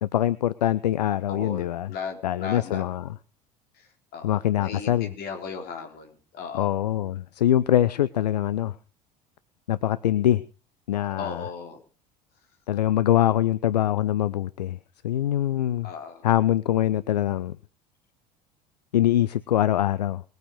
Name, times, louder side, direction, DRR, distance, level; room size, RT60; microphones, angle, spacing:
voice 1, 0.0-1.9 2.2-3.1 4.2-5.1 6.5-8.7 9.7-10.4 10.9-11.5 12.7-14.8 15.0-15.9 16.2-17.6 18.9-20.2, left 12 dB, 75° left, 17 dB, 0.6 m, -23 dB
voice 2, 1.3-2.8 3.8-3.9 4.1-6.7 11.2-11.8 15.8-16.3, left 6 dB, 45° left, 4 dB, 3.8 m, -36 dB
21.0 x 9.3 x 4.8 m, 0.35 s
figure-of-eight pair, 70°, 21 cm